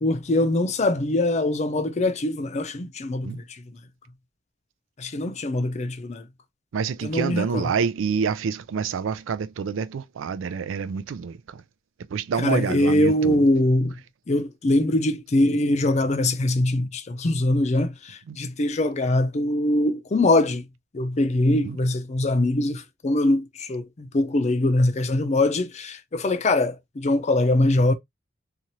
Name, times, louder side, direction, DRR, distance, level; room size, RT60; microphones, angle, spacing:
voice 1, 0.0-3.6 5.0-6.3 7.0-7.7 12.4-13.9 14.3-20.7 20.9-27.9, left 1 dB, 35° left, 0.5 m, -23 dB
voice 2, 6.7-11.6 12.1-13.4 18.3-18.4 21.6-21.8, right 6 dB, 80° right, 0.4 m, -27 dB
2.7 x 2.4 x 2.9 m
head